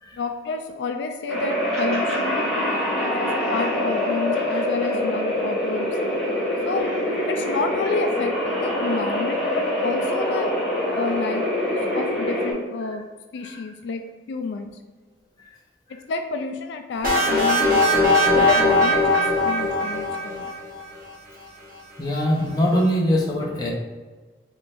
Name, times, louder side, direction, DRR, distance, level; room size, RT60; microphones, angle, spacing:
voice 1, 0.2-6.0 6.6-6.9 7.3-10.5 11.0-11.5 11.9-13.0 13.3-14.7 15.9-17.9 18.3-20.5, left 4 dB, 75° left, 6 dB, 0.3 m, -30 dB
sound 1, 1.3-12.5, left 1 dB, 5° left, 1.3 m, -24 dB
sound 2, 17.0-20.8, left 1 dB, 50° right, 1.2 m, -19 dB
voice 2, 22.0-23.7, equal, 20° left, -3 dB, 0.8 m, -23 dB
4.3 x 3.7 x 2.5 m, 1.3 s
head